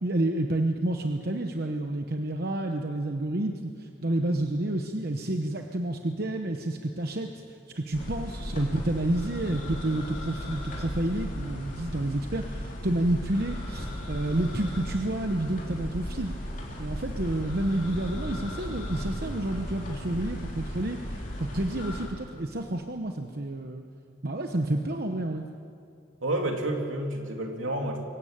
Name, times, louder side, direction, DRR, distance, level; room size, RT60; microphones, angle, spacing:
voice 1, 0.0-7.4 7.8-16.3 16.8-23.8 24.2-25.4, right 1 dB, 50° right, 4 dB, 1.0 m, -29 dB
sound 1, 7.9-22.1, equal, 40° left, 3.8 m, -36 dB
voice 2, 26.2-28.0, right 1 dB, 80° right, 2 dB, 2.9 m, -29 dB
23.5 x 15.5 x 8.9 m, 2.4 s
head